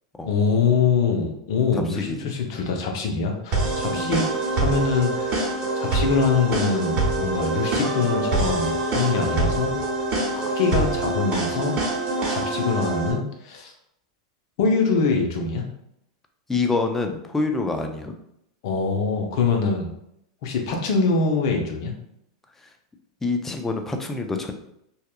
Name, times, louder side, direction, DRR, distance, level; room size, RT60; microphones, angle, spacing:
voice 1, 0.2-4.2 4.5-5.4 5.8-9.7 10.4-11.8 12.3-13.7 14.6-15.6 18.6-19.9 20.4-21.9, left 4 dB, 60° left, 2 dB, 0.6 m, -24 dB
voice 2, 1.7-2.7 3.9-4.1 16.5-18.1 23.2-24.5, left 3 dB, 10° left, 4 dB, 0.4 m, -27 dB
sound 1, 3.5-13.1, right 2 dB, 40° right, 0.8 m, -25 dB
2.7 x 2.2 x 2.3 m, 0.76 s
hypercardioid pair, 110°, 3 cm